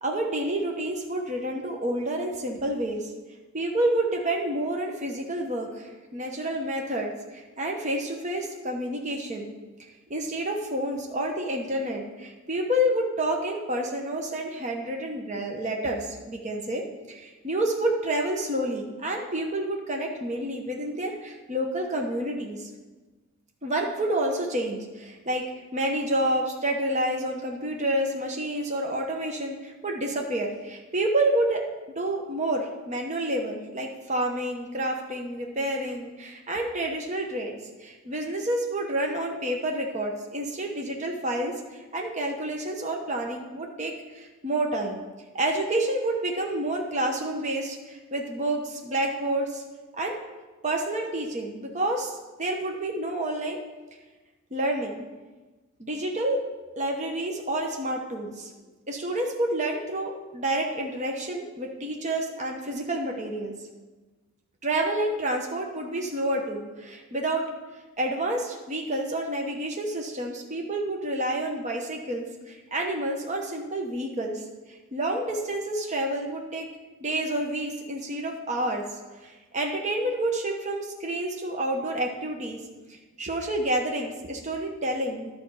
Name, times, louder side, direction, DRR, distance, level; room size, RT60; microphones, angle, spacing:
voice 1, 0.0-3.1 3.5-9.5 10.1-22.7 23.6-31.6 32.0-37.5 37.8-45.0 45.3-49.6 50.0-50.2 50.6-53.6 54.5-55.0 55.8-56.4 56.8-58.5 58.9-63.5 64.6-67.5 68.0-76.7 77.0-82.6 82.9-85.3, right 1 dB, 30° right, 1 dB, 0.9 m, -29 dB
11.0 x 5.2 x 7.0 m, 1.2 s
head